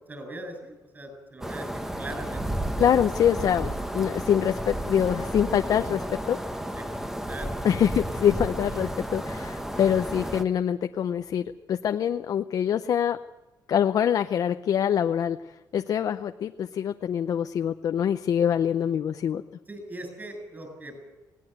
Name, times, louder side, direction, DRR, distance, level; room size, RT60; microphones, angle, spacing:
voice 1, 0.1-2.5 6.7-7.6 8.2-8.3 19.7-21.0, right 1 dB, 25° right, 5 dB, 7.6 m, -40 dB
sound 1, 1.4-10.4, right 1 dB, 5° right, 1.2 m, -32 dB
voice 2, 2.8-3.7 3.9-6.4 7.6-13.2 13.7-15.4 15.7-19.4, left 9 dB, 55° left, 8 dB, 0.6 m, -25 dB
19.5 x 18.0 x 8.1 m, 1.1 s
cardioid pair, 130°, 7 cm